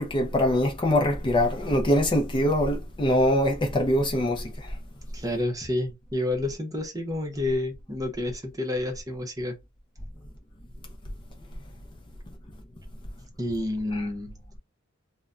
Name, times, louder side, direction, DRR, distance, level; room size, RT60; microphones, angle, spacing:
voice 1, 0.0-4.8 13.9-14.0, left 1 dB, 25° left, 0.5 m, -23 dB
voice 2, 5.1-9.6 13.4-14.3, left 1 dB, 20° right, 0.7 m, -29 dB
2.2 x 2.1 x 3.7 m
head